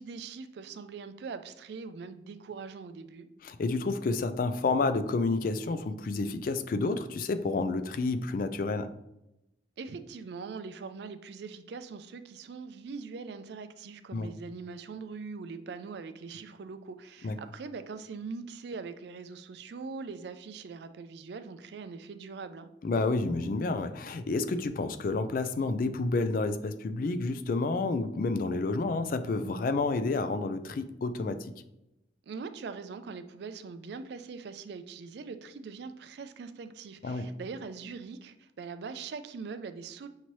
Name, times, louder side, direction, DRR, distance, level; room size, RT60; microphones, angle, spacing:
voice 1, 0.0-3.3 9.8-22.7 32.2-40.1, right 4 dB, 60° right, 10 dB, 0.3 m, -42 dB
voice 2, 3.4-8.9 14.1-14.3 17.2-17.4 22.8-31.5 37.0-37.3, left 3 dB, 50° left, 10 dB, 0.3 m, -30 dB
5.9 x 2.7 x 3.0 m, 0.88 s
head